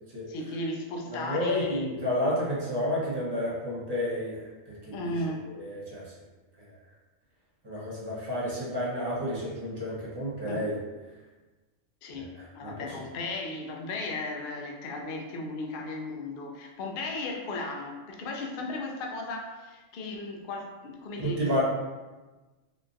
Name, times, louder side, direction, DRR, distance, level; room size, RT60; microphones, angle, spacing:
voice 1, 0.3-1.9 4.9-5.4 10.5-10.6 12.0-21.6, left 2 dB, 60° left, 0 dB, 0.6 m, -35 dB
voice 2, 1.1-5.1 5.6-6.0 7.6-10.8 12.4-12.9 21.2-21.6, left 1 dB, 25° right, -7 dB, 0.8 m, -31 dB
3.7 x 2.5 x 2.5 m, 1.2 s
omnidirectional pair, 1.4 m